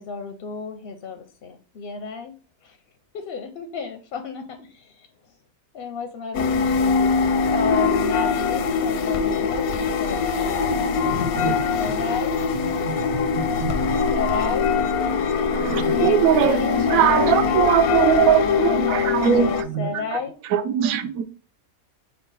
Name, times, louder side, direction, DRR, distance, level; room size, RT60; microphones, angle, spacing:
voice 1, 0.0-2.3 2.6-2.8 3.1-5.1 5.7-7.1 7.4-12.4 14.1-14.7 15.0-15.3 15.9-20.3, left 5 dB, 60° left, 0.6 m, -32 dB
sound 1, 6.3-19.6, left 5 dB, 85° left, 1.1 m, -22 dB
voice 2, 10.7-11.6 12.8-14.0, equal, 45° right, 1.0 m, -31 dB
voice 3, 15.5-20.2 20.5-21.2, right 9 dB, 75° right, 1.0 m, -21 dB
5.6 x 2.2 x 4.0 m
omnidirectional pair, 1.5 m